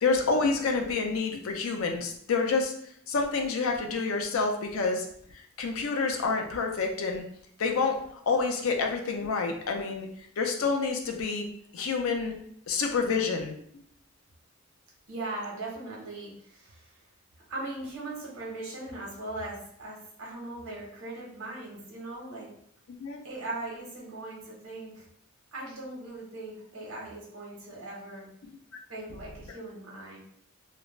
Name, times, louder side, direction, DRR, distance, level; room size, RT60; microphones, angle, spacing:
voice 1, 0.0-2.7 3.1-5.1 5.6-7.2 7.6-8.0 8.3-10.1 10.4-11.5 11.7-12.3 12.7-13.6 23.0-23.2, left 4 dB, 75° left, 3 dB, 0.4 m, -28 dB
voice 2, 15.1-16.9 17.5-22.5 23.2-25.0 25.5-28.3 28.9-30.2, right 2 dB, 75° right, -3 dB, 1.0 m, -39 dB
2.4 x 2.1 x 3.1 m, 0.65 s
head